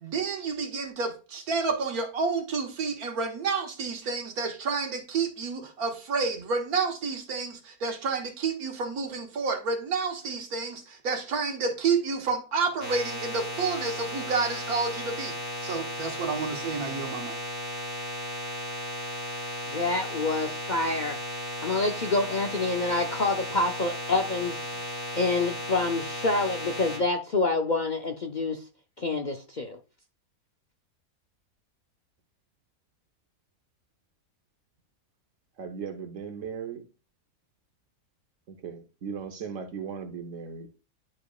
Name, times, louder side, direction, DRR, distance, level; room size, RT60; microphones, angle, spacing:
voice 1, 0.0-15.4 15.6-17.4, right 4 dB, 80° right, 1.8 m, -30 dB
sound 1, 12.8-27.0, left 1 dB, 80° left, 3.5 m, -35 dB
voice 2, 19.6-21.2 21.6-28.6 29.0-29.8, left 3 dB, 45° left, 0.6 m, -27 dB
voice 3, 35.6-36.8 38.5-40.7, right 6 dB, 60° right, 1.4 m, -37 dB
11.0 x 5.0 x 2.4 m
omnidirectional pair, 1.5 m